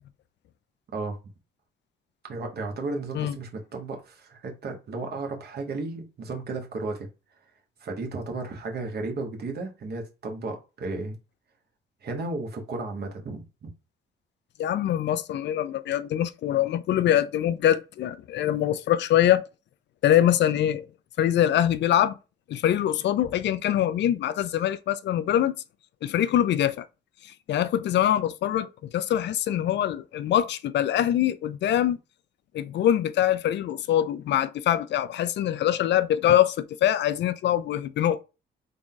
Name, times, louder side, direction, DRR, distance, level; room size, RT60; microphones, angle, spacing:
voice 1, 2.3-7.1 7.8-11.1 12.0-13.7, right 3 dB, 55° right, 1.2 m, -34 dB
voice 2, 14.6-19.5 20.0-20.9 21.2-22.2 22.5-25.6 26.0-26.9 27.2-32.0 32.5-38.2, left 11 dB, 65° left, 0.4 m, -24 dB
3.7 x 2.3 x 3.8 m
cardioid pair, 90°, 20 cm